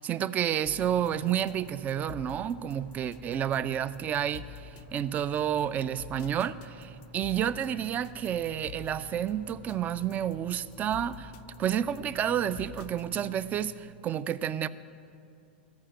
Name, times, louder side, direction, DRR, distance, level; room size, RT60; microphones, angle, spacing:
voice 1, 0.0-11.3 11.6-14.7, right 10 dB, 25° right, 0.4 m, -30 dB
sound 1, 0.7-13.8, left 13 dB, 45° left, 0.4 m, -49 dB
sound 2, 0.8-13.7, right 1 dB, 65° right, 2.5 m, -50 dB
14.0 x 5.0 x 9.0 m
hypercardioid pair, 110°, 6 cm